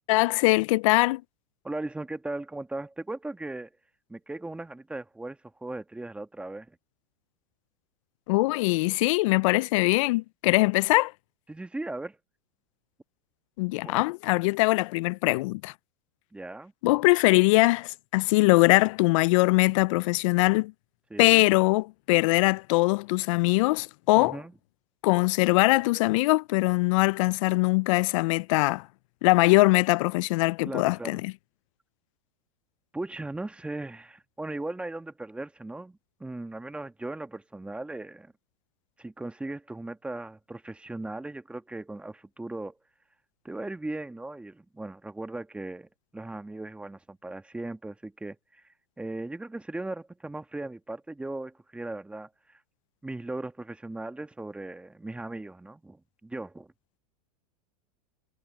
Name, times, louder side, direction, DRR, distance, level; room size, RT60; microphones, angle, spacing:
voice 1, 0.1-1.2 8.3-11.1 13.6-15.7 16.8-20.7 21.2-24.4 25.0-28.8 29.2-31.3, left 23 dB, 60° left, 0.5 m, -22 dB
voice 2, 1.6-3.7 4.1-6.8 11.5-12.2 13.8-13.9 16.3-16.7 21.1-21.5 24.1-24.5 30.6-31.2 32.9-38.3 39.0-42.7 43.4-48.6 49.0-52.6 53.0-56.7, right 2 dB, 5° right, 1.4 m, -38 dB
hypercardioid pair, 125°, 19 cm